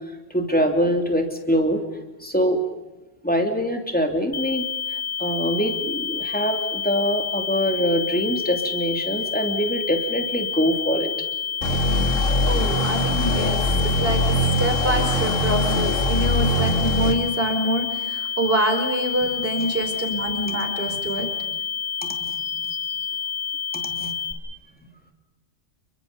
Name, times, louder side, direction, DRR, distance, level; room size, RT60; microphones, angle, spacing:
voice 1, 0.3-1.8 2.2-2.6 3.2-4.7 5.2-11.1 19.6-19.7 20.9-21.3 22.0-22.4 23.7-24.2, equal, 5° left, 3 dB, 3.1 m, -24 dB
sound 1, 4.3-24.3, left 7 dB, 25° left, 4.3 m, -29 dB
sound 2, 11.6-17.1, left 1 dB, 85° left, 3.1 m, -22 dB
voice 2, 12.4-21.3 22.4-22.5, right 1 dB, 50° right, 3 dB, 5.1 m, -26 dB
30.0 x 23.5 x 5.3 m, 1.1 s
omnidirectional pair, 1.3 m